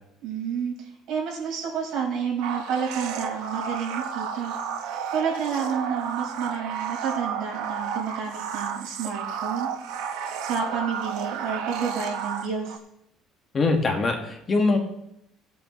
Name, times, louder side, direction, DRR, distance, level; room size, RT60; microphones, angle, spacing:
voice 1, 0.2-4.5 4.8-9.7 10.4-12.8, right 6 dB, 60° right, -2 dB, 4.8 m, -30 dB
sound 1, 2.4-12.8, right 7 dB, 85° right, 1.0 m, -32 dB
voice 2, 13.5-14.8, left 3 dB, 30° left, 3 dB, 1.6 m, -22 dB
18.5 x 8.4 x 3.2 m, 0.77 s
cardioid pair, 145°, 0 cm